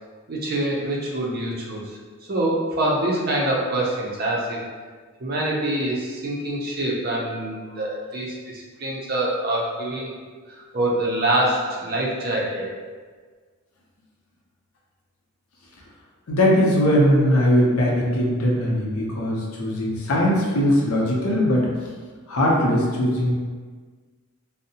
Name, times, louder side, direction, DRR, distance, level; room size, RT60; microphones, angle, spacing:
voice 1, 0.3-2.0 2.3-4.6 5.2-10.2 10.5-12.7, right 1 dB, 45° right, -3 dB, 0.4 m, -25 dB
voice 2, 16.3-21.7 22.3-23.3, equal, 80° left, -3 dB, 0.6 m, -20 dB
2.6 x 2.0 x 2.7 m, 1.5 s
head